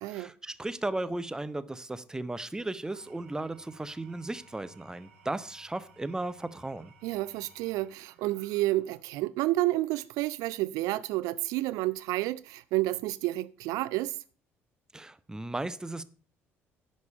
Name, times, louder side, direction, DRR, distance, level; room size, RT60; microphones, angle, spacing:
voice 1, 0.1-6.9 14.9-16.0, right 2 dB, 10° right, 0.7 m, -35 dB
Engine / Tools, 2.8-9.2, right 4 dB, 75° right, 1.5 m, -59 dB
voice 2, 7.0-14.2, right 17 dB, 60° right, 0.4 m, -30 dB
10.5 x 5.3 x 6.9 m
figure-of-eight pair, 50°, 7 cm